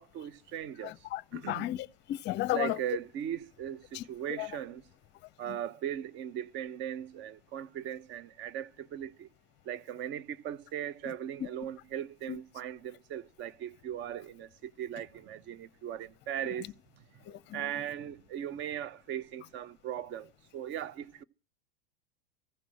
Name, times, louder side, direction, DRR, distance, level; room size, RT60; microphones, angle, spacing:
voice 1, 0.0-0.9 1.3-1.7 2.5-4.8 5.4-9.3 9.7-16.7 17.5-21.2, right 10 dB, 40° right, 0.8 m, -38 dB
voice 2, 0.8-2.8 3.9-4.0 4.4-4.5 12.3-12.4 17.3-17.6, left 16 dB, 35° left, 0.7 m, -34 dB
15.0 x 6.1 x 9.8 m
hypercardioid pair, 105°, 30 cm